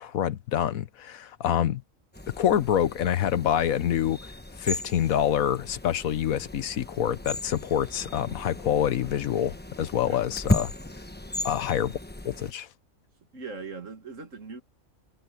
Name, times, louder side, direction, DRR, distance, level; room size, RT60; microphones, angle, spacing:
voice 1, 0.0-1.8 2.4-4.2 4.6-10.7 11.4-12.0 12.2-12.7, left 10 dB, 85° left, 1.3 m, -26 dB
sound 1, 2.1-12.5, left 1 dB, 10° left, 0.8 m, -35 dB
voice 2, 13.3-14.6, right 4 dB, 65° right, 2.5 m, -40 dB
omnidirectional pair, 1.4 m